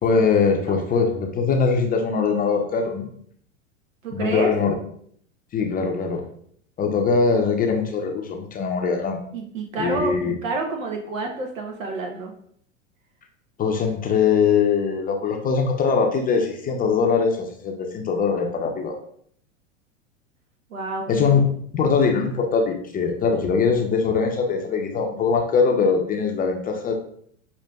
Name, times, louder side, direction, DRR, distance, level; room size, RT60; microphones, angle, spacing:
voice 1, 0.0-3.1 4.1-4.7 5.5-6.2 6.8-9.2 9.8-10.3 13.6-18.9 21.1-21.4 21.7-26.9, left 5 dB, 20° left, 3 dB, 0.5 m, -22 dB
voice 2, 4.0-4.5 9.3-12.3 20.7-21.3, right 3 dB, 85° right, 2 dB, 0.7 m, -29 dB
6.4 x 2.5 x 2.3 m, 0.64 s
hypercardioid pair, 95°, 39 cm